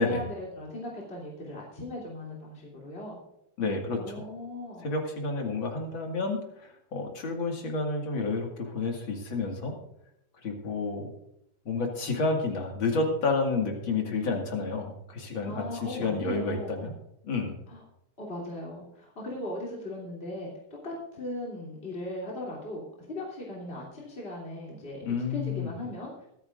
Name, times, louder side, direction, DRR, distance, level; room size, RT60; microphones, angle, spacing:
voice 1, 0.0-3.1 4.0-4.9 15.4-16.9 17.7-17.8 18.2-20.5 20.8-25.0 25.3-26.3, left 1 dB, 25° left, -4 dB, 3.1 m, -38 dB
voice 2, 3.6-4.3 4.8-9.8 10.4-11.1 11.6-16.9 17.2-17.5 25.0-25.7, left 3 dB, 65° left, 1 dB, 2.9 m, -30 dB
24.5 x 9.1 x 2.6 m, 0.77 s
omnidirectional pair, 2.4 m